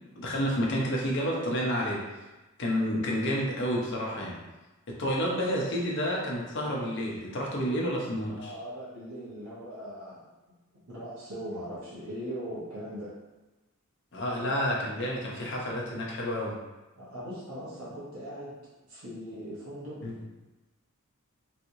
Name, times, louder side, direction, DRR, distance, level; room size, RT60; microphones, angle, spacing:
voice 1, 0.2-2.0 2.6-4.3 5.0-8.5 14.1-16.5 20.0-20.1, equal, 55° left, -3 dB, 0.7 m, -29 dB
voice 2, 8.3-10.2 10.9-13.1 14.3-14.6 17.0-18.5 18.9-20.3, equal, 80° right, -10 dB, 1.1 m, -40 dB
3.2 x 3.0 x 2.7 m, 1.1 s
head